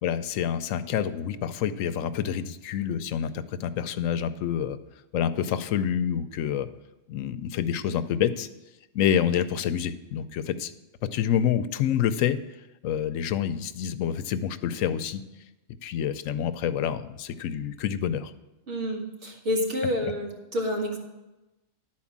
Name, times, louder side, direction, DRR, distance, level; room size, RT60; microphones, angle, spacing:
voice 1, 0.0-4.8 5.1-6.7 7.1-8.5 8.9-10.7 11.0-12.4 12.8-15.2 15.8-18.3, left 9 dB, 85° left, 12 dB, 1.0 m, -27 dB
voice 2, 18.7-21.0, left 1 dB, 60° right, -1 dB, 2.1 m, -28 dB
11.5 x 4.5 x 7.2 m, 1.0 s
omnidirectional pair, 1.3 m